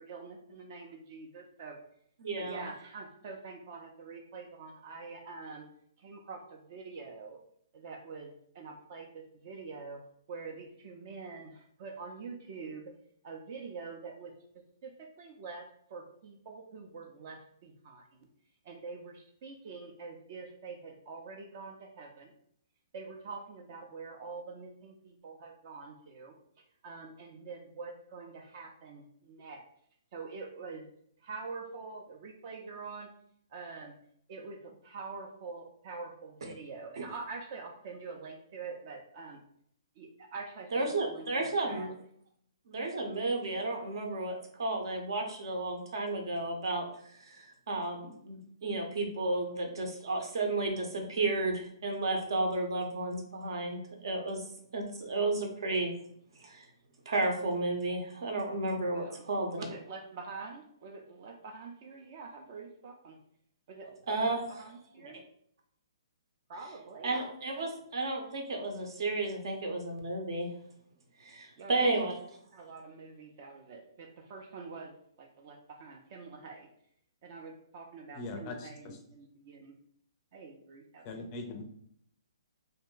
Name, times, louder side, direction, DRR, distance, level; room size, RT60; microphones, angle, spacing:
voice 1, 0.0-1.8 2.3-5.6 6.0-7.4 7.7-8.3 8.5-10.0 10.3-12.9 13.2-14.3 14.8-18.3 18.7-22.3 22.9-26.3 26.8-29.6 30.1-30.9 31.2-33.1 33.5-34.0 34.3-39.4 40.0-41.9 58.9-59.2 59.6-63.2 63.7-63.9 64.2-65.2 66.5-67.2 71.6-72.1 72.5-76.7 77.2-79.7 80.3-81.3, right 4 dB, 40° right, 2 dB, 0.4 m, -45 dB
voice 2, 2.2-2.6 36.4-36.5 37.0-37.1 40.7-41.9 42.7-54.4 54.7-55.9 56.4-56.7 57.1-59.6 64.1-64.6 65.0-65.1 67.0-70.5 71.2-72.2, right 2 dB, 65° right, 3 dB, 0.8 m, -33 dB
voice 3, 78.1-79.0 81.0-81.6, left 2 dB, 25° left, 5 dB, 0.4 m, -41 dB
2.6 x 2.1 x 3.7 m, 0.67 s
hypercardioid pair, 155°, 3 cm